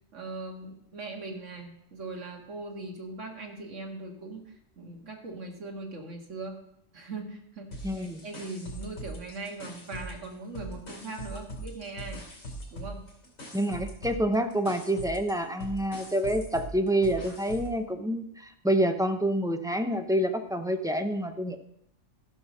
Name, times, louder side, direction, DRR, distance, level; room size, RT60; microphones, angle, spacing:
voice 1, 0.1-6.6 6.9-12.2 12.7-13.0, right 3 dB, 70° right, 1 dB, 2.1 m, -40 dB
sound 1, 7.7-10.3 10.5-17.8, right 1 dB, 90° left, 3.0 m, -41 dB
voice 2, 7.8-8.2 13.5-21.6, right 1 dB, 5° right, 6 dB, 0.3 m, -27 dB
13.5 x 5.8 x 6.2 m, 0.75 s
omnidirectional pair, 1.3 m